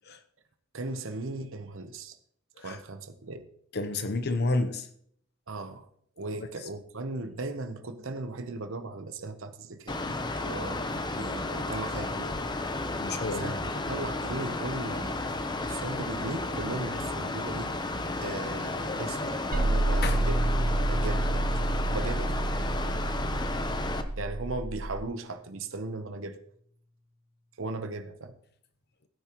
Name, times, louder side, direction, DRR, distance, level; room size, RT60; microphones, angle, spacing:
voice 1, 0.7-2.2 2.6-3.5 5.5-5.9 6.2-12.3 13.3-15.3 15.7-17.7 18.2-20.4 20.9-21.5 21.9-22.5 24.2-26.4 27.6-28.3, right 2 dB, 70° right, 1.0 m, -37 dB
voice 2, 3.7-4.9 6.4-6.5 12.3-12.4 13.0-13.6 20.0-20.2, left 2 dB, 55° left, 0.8 m, -30 dB
Mechanical fan, 9.9-24.0, left 2 dB, 20° left, 0.8 m, -33 dB
sound 1, 19.5-25.0, right 2 dB, 45° right, 0.6 m, -29 dB
Piano, 20.0-25.7, left 1 dB, 40° left, 1.6 m, -42 dB
15.5 x 9.6 x 3.1 m
head